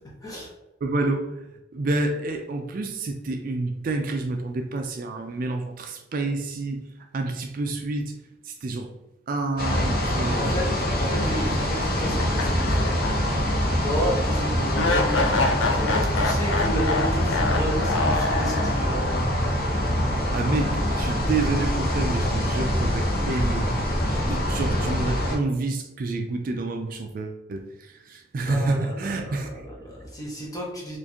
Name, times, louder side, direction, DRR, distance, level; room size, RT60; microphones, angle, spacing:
voice 1, 0.8-6.9 7.1-8.1 8.4-8.9 9.3-10.5 20.3-23.7 24.1-29.5, right 3 dB, 45° right, 5 dB, 0.3 m, -29 dB
sound 1, 9.6-25.4, equal, 50° left, 0.8 m, -24 dB
voice 2, 10.4-10.7 11.0-13.1 13.8-15.2 15.7-19.5 28.5-31.0, equal, 20° left, -3 dB, 0.8 m, -32 dB
sound 2, 12.2-13.4 13.8-13.9 14.7-19.0, left 3 dB, 75° left, 0.5 m, -26 dB
4.5 x 2.5 x 2.7 m, 0.97 s
head